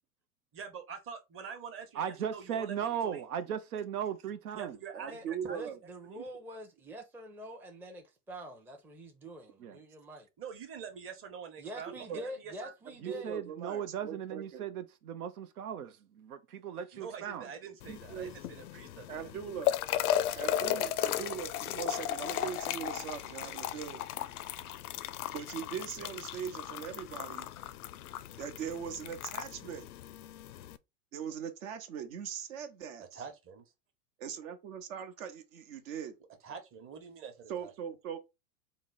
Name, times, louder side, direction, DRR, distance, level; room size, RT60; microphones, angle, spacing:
voice 1, 0.5-3.2 4.5-5.8 6.0-6.3 10.4-12.7 16.9-19.3 33.0-33.6 36.4-37.7, right 6 dB, 30° right, 1.0 m, -46 dB
voice 2, 2.0-4.8 9.6-9.8 13.0-16.0 16.6-17.5, right 8 dB, 80° right, 0.6 m, -37 dB
voice 3, 4.9-5.8 11.9-12.2 13.1-14.6 17.9-18.3 19.1-19.8 20.3-24.0 25.3-27.5 28.4-29.8 31.1-33.2 34.2-36.1 37.5-38.2, right 8 dB, 65° right, 0.9 m, -40 dB
voice 4, 5.5-10.3 11.6-13.4, right 1 dB, 5° right, 0.5 m, -45 dB
sound 1, 17.8-30.8, left 11 dB, 80° left, 0.5 m, -36 dB
3.8 x 2.1 x 3.8 m
hypercardioid pair, 95°, 44 cm